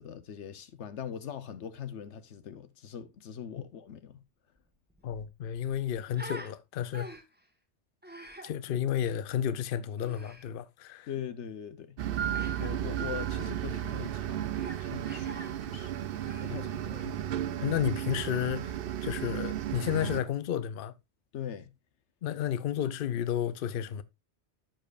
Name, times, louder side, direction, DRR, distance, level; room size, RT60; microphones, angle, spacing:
voice 1, 0.0-4.2 11.1-12.0 12.6-15.9 16.4-17.0 21.3-21.7, left 8 dB, 80° left, 1.1 m, -41 dB
Human voice, 4.6-4.7 4.9-6.5 6.9-7.4 8.0-8.5 10.0-10.5 12.3-12.7 13.3-13.6 14.5-14.8 15.0-15.5 16.1-17.2, right 1 dB, 10° right, 1.4 m, -46 dB
voice 2, 5.0-7.1 8.4-11.1 17.6-20.9 22.2-24.0, left 10 dB, 60° left, 0.7 m, -32 dB
sound 1, 12.0-20.2, right 11 dB, 60° right, 0.7 m, -34 dB
14.5 x 5.2 x 2.4 m
omnidirectional pair, 1.2 m